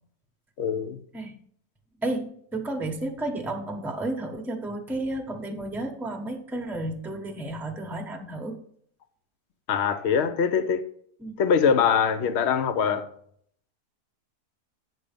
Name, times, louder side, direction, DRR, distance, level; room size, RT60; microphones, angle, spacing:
voice 1, 0.6-1.0 9.7-10.8 11.4-13.1, left 7 dB, 55° left, 0.9 m, -23 dB
voice 2, 2.0-8.6 11.2-11.3, right 2 dB, ahead, 0.9 m, -32 dB
8.9 x 6.1 x 5.2 m
omnidirectional pair, 1.7 m